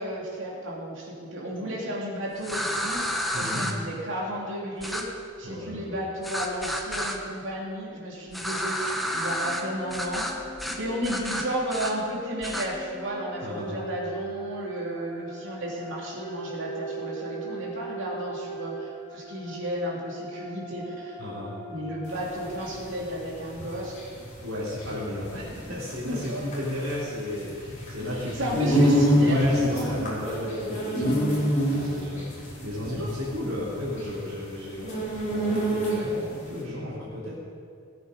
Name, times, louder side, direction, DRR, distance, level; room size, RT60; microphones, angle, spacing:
voice 1, 0.0-5.1 5.4-10.3 10.6-21.1 21.7-24.0 26.0-26.5 28.0-29.9, equal, 60° right, -4 dB, 3.1 m, -33 dB
sound 1, 2.4-3.7 4.8-5.0 6.2-7.2 8.3-9.6 9.9-10.3 10.6-10.8 11.0-11.9 12.4-12.7, equal, ahead, 1.0 m, -30 dB
voice 2, 3.3-3.7 5.4-5.9 13.4-13.8 21.2-21.5 24.4-37.3, left 1 dB, 90° right, -9 dB, 3.5 m, -34 dB
sound 2, 9.3-22.7, right 1 dB, 15° left, 3.1 m, -40 dB
sound 3, 22.1-36.3, equal, 35° left, 3.5 m, -26 dB
18.0 x 8.4 x 5.4 m, 2.3 s
head